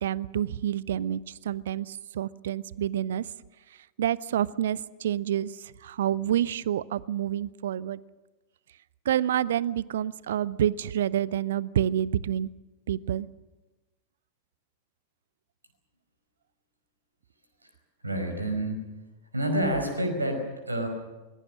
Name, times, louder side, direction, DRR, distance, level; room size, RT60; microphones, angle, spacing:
voice 1, 0.0-3.3 4.0-8.0 9.1-12.5 12.9-13.3, right 11 dB, 60° right, 21 dB, 0.6 m, -28 dB
voice 2, 18.0-18.8 19.3-20.9, right 1 dB, 80° right, 5 dB, 5.1 m, -28 dB
25.0 x 21.5 x 6.4 m, 1.2 s
figure-of-eight pair, 90°, 0 cm